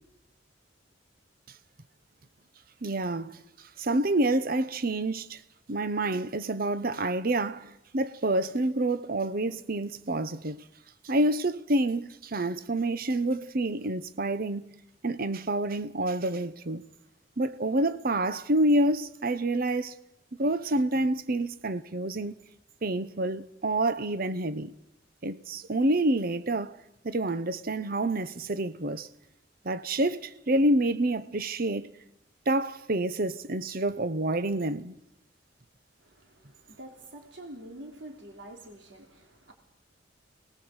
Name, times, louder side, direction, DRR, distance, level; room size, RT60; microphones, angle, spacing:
voice 1, 2.8-5.4 5.7-10.7 11.0-14.7 15.0-16.8 17.4-19.9 20.4-22.3 22.8-24.7 25.2-26.8 27.0-29.1 29.6-31.9 32.5-34.9, right 1 dB, 50° right, 0.9 m, -28 dB
voice 2, 36.0-39.5, right 1 dB, 75° right, 3.6 m, -47 dB
26.5 x 20.0 x 8.0 m
head